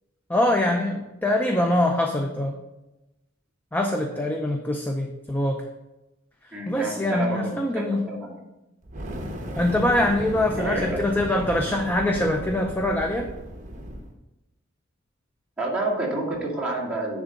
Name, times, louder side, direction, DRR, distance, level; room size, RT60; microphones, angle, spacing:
voice 1, 0.3-2.5 3.7-5.6 6.7-8.1 9.6-13.3, left 1 dB, 10° left, 3 dB, 0.5 m, -24 dB
voice 2, 6.5-8.4 10.5-11.0 15.6-17.2, right 2 dB, 5° right, -7 dB, 2.3 m, -29 dB
Fire, 8.8-14.1, equal, 40° right, 1.0 m, -35 dB
10.5 x 3.6 x 5.2 m, 0.98 s
head